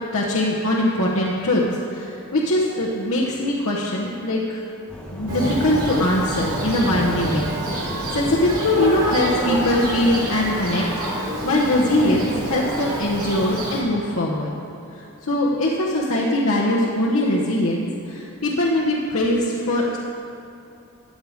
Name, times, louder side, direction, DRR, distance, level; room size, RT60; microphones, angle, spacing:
voice 1, 0.1-1.6 1.9-4.6 5.1-10.8 11.1-14.5 14.9-20.0, left 1 dB, 75° left, -4 dB, 1.1 m, -22 dB
sound 1, 4.9-9.9, equal, 5° left, 0.9 m, -37 dB
Thunder, 5.3-13.8, right 1 dB, 90° right, 2.8 m, -27 dB
13.5 x 8.0 x 5.1 m, 2.7 s
head